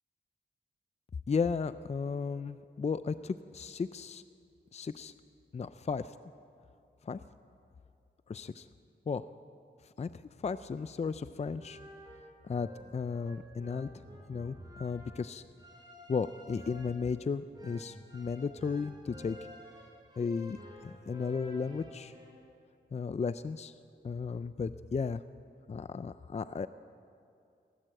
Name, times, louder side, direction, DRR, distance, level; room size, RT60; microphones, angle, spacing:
voice 1, 1.3-4.2 4.7-5.1 5.5-6.1 7.1-7.2 8.3-8.7 9.1-9.2 10.0-10.1 10.4-11.8 12.4-13.9 14.3-15.4 16.1-19.4 20.2-20.6 20.8-22.1 22.9-23.7 24.0-25.2 25.7-26.7, left 5 dB, 35° left, 13 dB, 0.4 m, -34 dB
sound 1, 11.5-22.3, equal, 20° right, 5.3 m, -51 dB
19.0 x 18.0 x 7.8 m, 2.4 s
wide cardioid pair, 85°, 19 cm